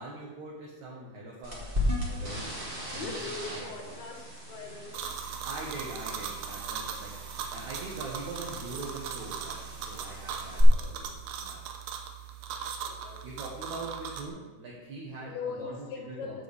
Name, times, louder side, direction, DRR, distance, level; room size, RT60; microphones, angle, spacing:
voice 1, 0.0-1.6 2.1-2.6 2.9-3.2 3.5-3.7 5.4-11.6 13.2-16.4, right 2 dB, 60° right, -5 dB, 2.3 m, -42 dB
sound 1, 1.4-10.6, left 1 dB, 30° right, 0.9 m, -38 dB
voice 2, 2.9-5.0 12.8-13.2 15.2-16.4, left 5 dB, 90° left, 0 dB, 3.5 m, -40 dB
sound 2, 4.9-14.3, right 7 dB, 80° right, 2.7 m, -39 dB
14.0 x 6.9 x 3.4 m, 1.2 s
omnidirectional pair, 4.4 m